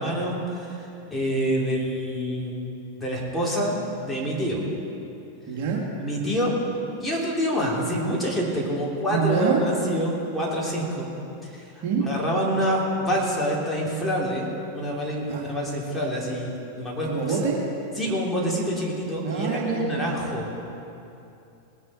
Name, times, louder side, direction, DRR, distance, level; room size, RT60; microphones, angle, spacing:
voice 1, 0.0-2.6 3.0-4.6 6.0-6.5 7.0-11.1 11.5-11.7 12.0-17.4 18.0-20.5, equal, 5° left, -5 dB, 3.2 m, -27 dB
voice 2, 5.5-5.8 9.1-9.6 11.8-12.1 15.3-15.4 17.1-17.7 19.2-20.1, right 6 dB, 50° right, -2 dB, 2.2 m, -25 dB
19.5 x 10.0 x 4.3 m, 2.7 s
figure-of-eight pair, 90°, 0 cm